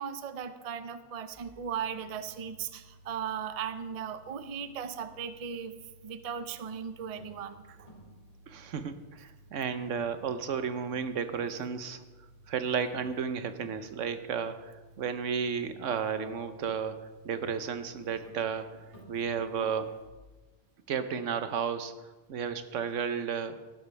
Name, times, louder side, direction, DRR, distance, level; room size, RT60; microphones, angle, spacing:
voice 1, 0.0-5.7 6.0-7.9 17.4-17.5 18.7-18.8, right 8 dB, 40° right, 11 dB, 0.6 m, -37 dB
sound 1, 1.3-20.1, right 1 dB, 25° left, 4.0 m, -56 dB
voice 2, 8.5-12.0 12.5-18.8 19.1-20.1 20.9-21.9 22.3-23.7, right 6 dB, 85° right, 10 dB, 1.1 m, -33 dB
13.5 x 12.0 x 3.3 m, 1.2 s
omnidirectional pair, 1.2 m